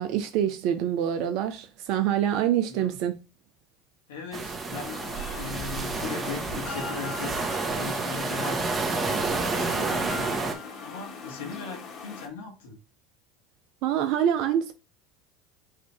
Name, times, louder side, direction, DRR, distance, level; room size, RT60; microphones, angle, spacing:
voice 1, 0.0-3.1 13.8-14.7, right 10 dB, 65° right, 0.4 m, -25 dB
voice 2, 2.7-3.0 4.1-5.0 5.4-7.4 7.7-8.6 9.0-12.8, left 5 dB, 85° left, 1.4 m, -38 dB
sound 1, 4.3-10.5, right 3 dB, 20° right, 1.2 m, -30 dB
sound 2, 4.8-12.3, left 4 dB, 50° left, 1.3 m, -40 dB
4.9 x 2.6 x 3.3 m
hypercardioid pair, 80°, 0 cm